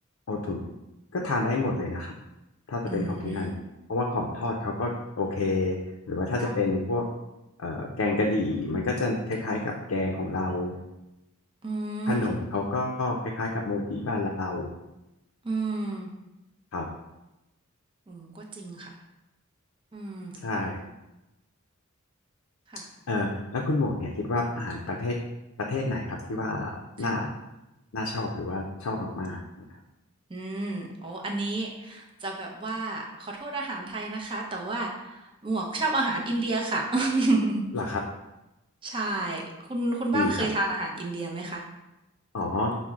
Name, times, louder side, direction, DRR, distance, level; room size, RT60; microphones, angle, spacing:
voice 1, 0.3-0.6 1.1-2.1 2.7-3.5 3.9-5.8 6.1-7.0 7.6-10.8 12.1-14.7 16.7-16.9 20.4-20.8 23.1-25.2 25.6-27.3 27.9-29.4 37.7-38.0 40.1-40.5 42.3-42.8, left 2 dB, 75° left, 0 dB, 0.5 m, -29 dB
voice 2, 2.9-3.5 6.4-6.5 11.6-12.3 15.4-16.1 18.1-18.9 19.9-20.3 22.7-22.8 30.3-34.9 35.4-37.6 38.8-39.4 39.7-41.6, right 2 dB, 25° right, 0 dB, 0.6 m, -30 dB
5.8 x 2.1 x 3.6 m, 0.97 s
head